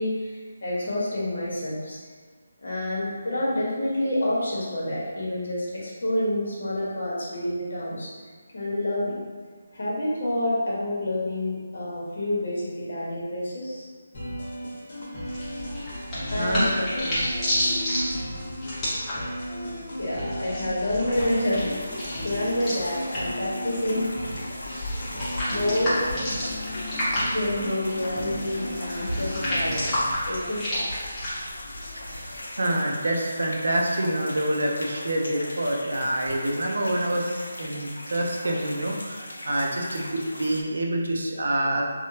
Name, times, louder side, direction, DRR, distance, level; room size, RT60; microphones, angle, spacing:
voice 1, 0.0-2.0 2.6-8.1 8.5-9.2 9.7-13.9 16.3-17.4 19.2-19.3 20.0-22.0 22.2-24.1 25.5-29.8 30.3-30.8 33.1-33.2 36.2-36.5, left 1 dB, 65° left, -6 dB, 1.2 m, -28 dB
sound 1, 14.1-30.1, equal, 45° left, 1.2 m, -35 dB
sound 2, 15.2-32.4, left 1 dB, 15° left, 0.9 m, -31 dB
voice 2, 16.4-16.9 32.1-41.8, right 1 dB, 80° right, 0 dB, 0.5 m, -27 dB
sound 3, 21.1-40.6, left 1 dB, 85° left, 0.5 m, -40 dB
3.4 x 2.2 x 2.8 m, 1.5 s
figure-of-eight pair, 165°, 0 cm